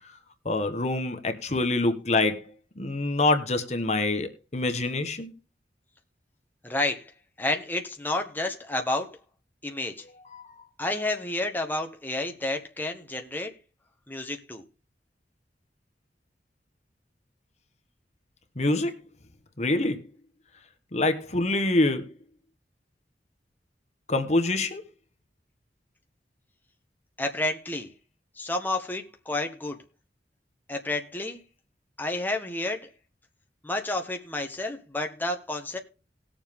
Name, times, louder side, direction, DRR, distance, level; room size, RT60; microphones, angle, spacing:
voice 1, 0.4-2.5 2.8-5.3 10.3-10.6 18.6-18.9 19.6-20.0 20.9-22.0 24.1-24.8, left 2 dB, 40° left, 1.3 m, -25 dB
voice 2, 6.6-7.1 7.4-9.2 9.6-10.0 10.8-13.5 14.1-14.6 27.2-27.9 28.4-29.8 30.7-31.4 32.0-32.9 33.6-35.8, left 2 dB, 10° left, 1.2 m, -30 dB
19.0 x 7.2 x 3.6 m
head